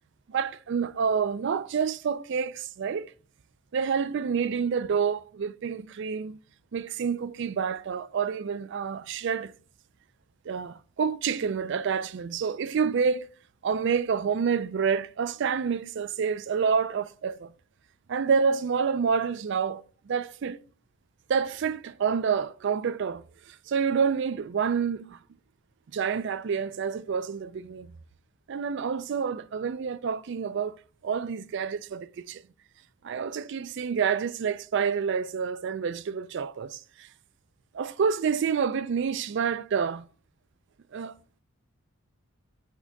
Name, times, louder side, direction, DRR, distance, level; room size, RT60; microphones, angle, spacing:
voice 1, 0.3-3.1 3.7-6.4 6.7-9.5 10.5-13.3 13.6-17.5 18.1-20.6 21.3-25.2 25.9-27.9 28.5-30.8 31.0-32.4 33.0-37.1 37.7-40.1 40.9-41.2, right 6 dB, 55° right, 0.3 m, -28 dB
8.3 x 3.3 x 5.8 m
head